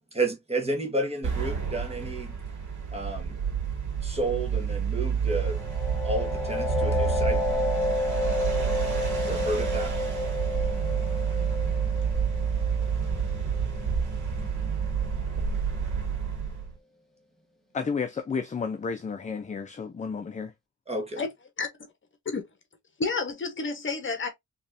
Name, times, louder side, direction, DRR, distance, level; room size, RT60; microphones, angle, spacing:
voice 1, 0.1-2.3 2.9-3.4 4.0-5.6 6.0-7.4 9.3-9.9 20.9-21.2, right 2 dB, 20° right, 1.5 m, -31 dB
sound 1, 1.2-16.7, right 6 dB, 75° right, 1.9 m, -29 dB
sound 2, 5.4-14.9, left 2 dB, ahead, 1.0 m, -31 dB
voice 2, 17.7-20.5, left 5 dB, 25° left, 0.5 m, -32 dB
voice 3, 23.0-24.3, left 4 dB, 40° left, 1.1 m, -29 dB
4.1 x 3.1 x 2.6 m
cardioid pair, 110°, 30 cm